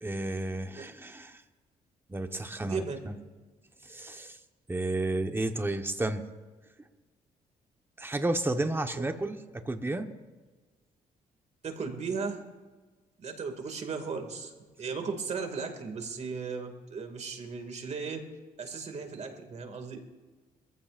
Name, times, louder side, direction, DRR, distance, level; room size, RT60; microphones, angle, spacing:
voice 1, 0.0-1.4 2.1-3.1 3.9-4.4 4.7-6.2 8.0-10.1, right 2 dB, 15° right, 6 dB, 1.2 m, -32 dB
voice 2, 2.5-3.0 8.9-9.1 11.6-12.4 13.2-14.5 14.8-18.2 18.6-20.0, right 5 dB, 50° right, 5 dB, 2.4 m, -36 dB
23.5 x 15.0 x 2.6 m, 1.3 s
cardioid pair, 85°, 15 cm